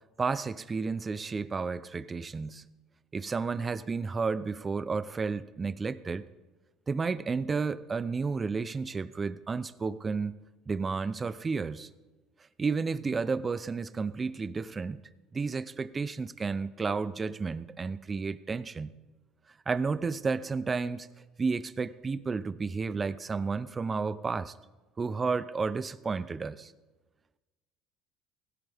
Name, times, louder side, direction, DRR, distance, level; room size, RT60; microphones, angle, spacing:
voice 1, 0.2-2.7 3.1-6.2 6.9-11.9 12.6-15.0 15.3-18.9 19.7-21.1 21.4-24.5 25.0-26.7, right 4 dB, 25° right, 15 dB, 0.7 m, -32 dB
17.5 x 16.0 x 3.6 m, 1.2 s
supercardioid pair, 95°, 0 cm